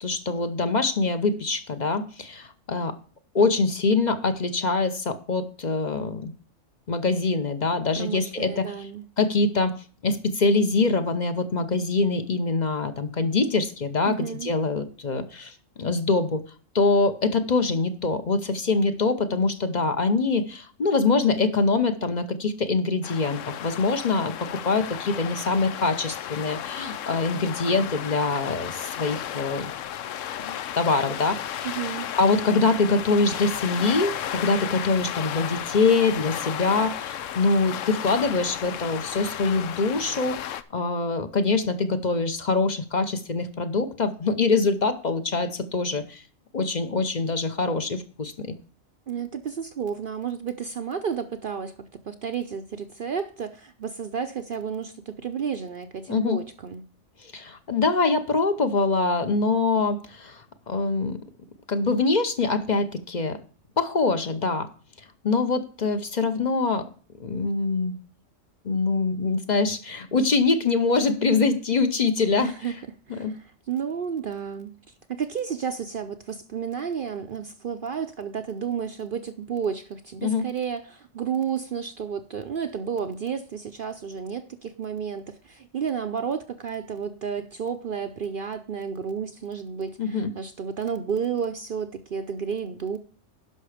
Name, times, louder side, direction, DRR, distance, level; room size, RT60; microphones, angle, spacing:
voice 1, 0.0-2.9 3.3-6.3 6.9-8.9 9.2-16.4 16.7-29.7 30.4-31.7 32.1-46.2 46.5-48.5 56.1-56.4 57.2-61.2 61.7-63.4 63.8-64.7 65.2-66.9 67.2-67.9 68.6-72.5 73.1-73.3 80.2-80.5 90.0-90.3, left 3 dB, 40° left, 0.9 m, -24 dB
voice 2, 8.0-9.0 14.1-14.5 31.6-32.1 49.1-51.7 52.1-56.8 72.4-72.7 73.1-74.7 75.1-93.0, right 7 dB, 55° right, 0.7 m, -31 dB
sound 1, 23.0-40.6, left 10 dB, 75° left, 1.0 m, -34 dB
11.0 x 5.8 x 4.9 m
omnidirectional pair, 1.3 m